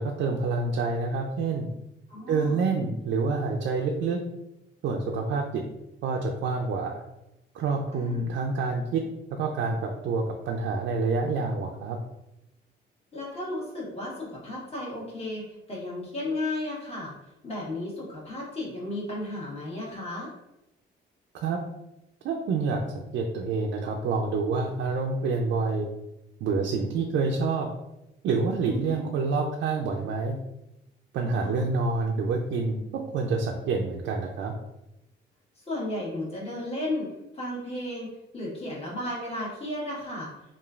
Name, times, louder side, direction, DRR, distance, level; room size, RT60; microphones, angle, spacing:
voice 1, 0.0-1.7 2.3-4.2 4.8-5.6 6.0-7.0 7.5-9.0 9.3-12.0 21.3-21.6 22.2-22.8 23.1-25.9 26.4-27.7 28.2-30.4 31.1-34.5, right 4 dB, 70° right, 1 dB, 0.4 m, -27 dB
voice 2, 2.1-2.7 7.9-8.3 13.1-17.1 17.4-20.3 28.6-29.1 31.2-31.7 35.7-37.1 37.3-40.3, left 1 dB, 30° left, -5 dB, 1.3 m, -34 dB
3.0 x 2.4 x 2.4 m, 0.90 s
cardioid pair, 90°, 20 cm